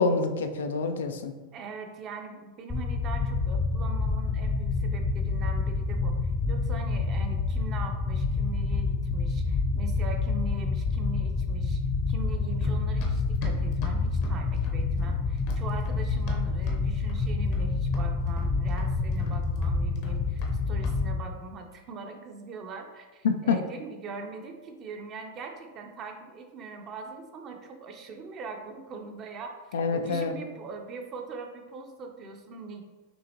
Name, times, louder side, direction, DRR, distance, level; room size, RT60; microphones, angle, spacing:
voice 1, 0.0-1.3 23.2-23.6 29.7-30.4, left 4 dB, 90° left, 7 dB, 0.4 m, -26 dB
voice 2, 1.5-11.8 12.1-32.8, right 4 dB, 35° right, 4 dB, 0.7 m, -41 dB
sound 1, 2.7-21.2, left 3 dB, 15° left, 0.6 m, -28 dB
Run, 12.6-16.8 17.1-17.7 17.9-20.6 20.8-21.0, left 3 dB, 55° left, 0.8 m, -39 dB
6.2 x 2.5 x 2.9 m, 1.3 s
hypercardioid pair, 125°, 0 cm